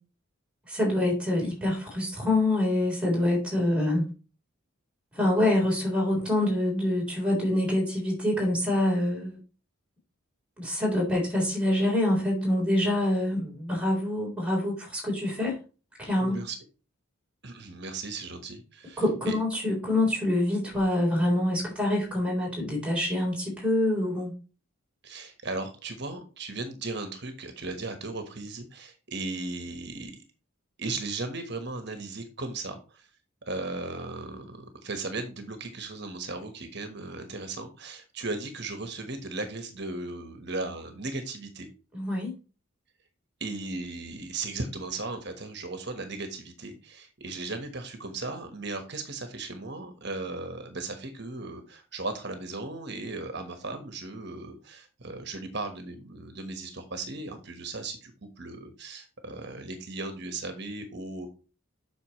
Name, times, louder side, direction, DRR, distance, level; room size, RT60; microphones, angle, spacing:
voice 1, 0.7-4.0 5.1-9.4 10.6-15.6 16.0-16.4 19.0-24.3 41.9-42.3, left 1 dB, 5° right, -3 dB, 3.8 m, -26 dB
voice 2, 16.2-16.5 17.4-19.4 25.0-30.1 30.8-33.1 33.5-41.7 43.4-61.3, right 3 dB, 50° right, 6 dB, 1.3 m, -36 dB
8.3 x 6.1 x 3.1 m, 0.33 s
head